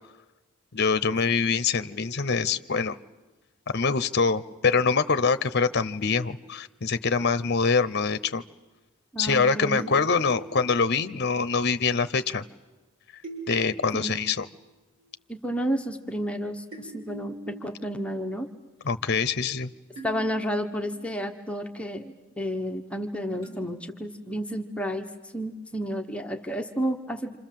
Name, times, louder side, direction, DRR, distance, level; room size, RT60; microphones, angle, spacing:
voice 1, 0.7-3.0 3.7-8.4 9.2-12.4 13.5-14.5 18.8-19.7, left 5 dB, 50° left, 12 dB, 0.8 m, -24 dB
voice 2, 9.1-9.9 13.9-14.2 15.3-18.5 20.0-27.4, equal, 5° left, 3 dB, 1.1 m, -31 dB
sound 1, 9.8-11.4 13.2-14.5 15.0-15.1 16.7-18.4 18.8-18.9 20.0-21.3 23.4-24.7, right 2 dB, 75° right, 5.9 m, -44 dB
27.5 x 27.0 x 7.6 m, 1.1 s
head